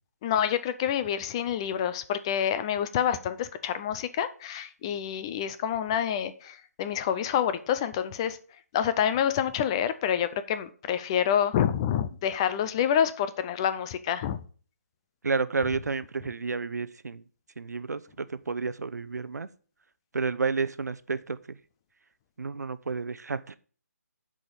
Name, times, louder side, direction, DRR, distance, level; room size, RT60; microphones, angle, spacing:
voice 1, 0.2-8.4 8.7-14.4, left 9 dB, 20° left, 12 dB, 0.4 m, -27 dB
voice 2, 15.2-17.2 17.6-19.5 20.1-21.4 22.4-23.6, right 4 dB, 80° right, 15 dB, 0.8 m, -31 dB
7.6 x 5.1 x 7.2 m, 0.42 s
figure-of-eight pair, 160°, 9 cm